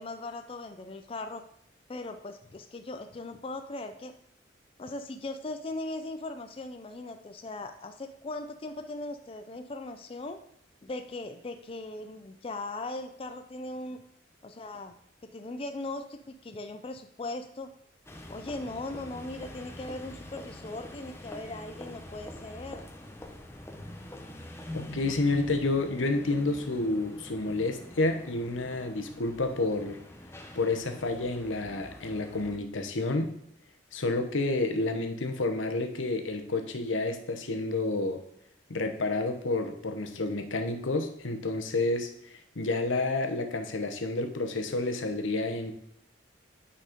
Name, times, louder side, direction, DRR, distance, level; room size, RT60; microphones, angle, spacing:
voice 1, 0.0-1.4 1.9-4.1 4.8-10.4 10.8-14.0 14.4-14.9 15.2-17.7 18.3-22.8, left 2 dB, 30° left, 7 dB, 0.4 m, -39 dB
sound 1, 18.1-32.6, left 1 dB, 15° left, 0.8 m, -45 dB
voice 2, 24.7-30.0 30.5-33.3 33.9-38.2 38.7-45.7, left 2 dB, 90° left, 6 dB, 1.0 m, -30 dB
9.1 x 4.2 x 5.1 m, 0.74 s
head